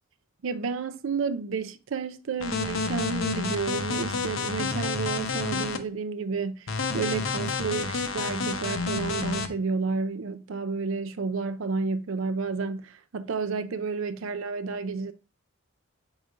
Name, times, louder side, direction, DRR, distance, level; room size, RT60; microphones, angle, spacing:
voice 1, 0.4-15.1, right 4 dB, 85° right, 0.5 m, -31 dB
sound 1, 2.4-5.8 6.7-9.5, left 4 dB, 85° left, 0.8 m, -29 dB
7.9 x 4.9 x 2.5 m
head